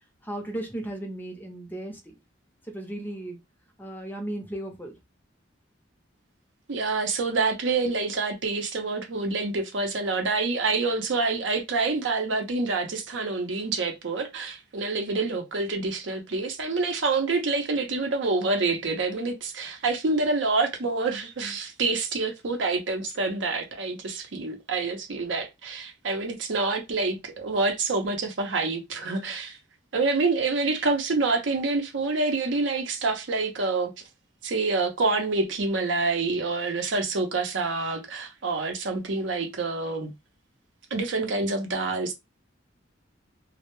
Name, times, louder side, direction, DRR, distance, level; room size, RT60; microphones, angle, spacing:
voice 1, 0.2-2.1 2.7-3.4 3.8-4.9, right 1 dB, 10° left, 0.5 m, -35 dB
voice 2, 6.7-29.6 29.9-33.9 34.4-40.1 40.9-42.1, right 3 dB, 70° right, 0.6 m, -27 dB
2.1 x 2.0 x 3.0 m
head